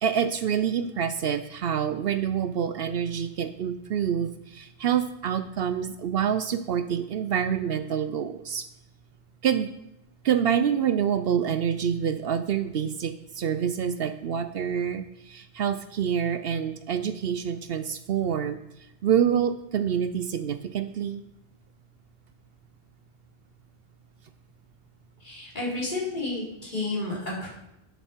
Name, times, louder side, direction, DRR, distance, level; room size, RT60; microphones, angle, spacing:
voice 1, 0.0-8.6 9.4-9.7 10.2-18.6 19.0-21.2, right 8 dB, 65° right, 10 dB, 0.8 m, -27 dB
voice 2, 25.2-27.5, left 2 dB, 45° left, -5 dB, 4.0 m, -31 dB
11.5 x 6.9 x 4.4 m, 0.87 s
omnidirectional pair, 1.1 m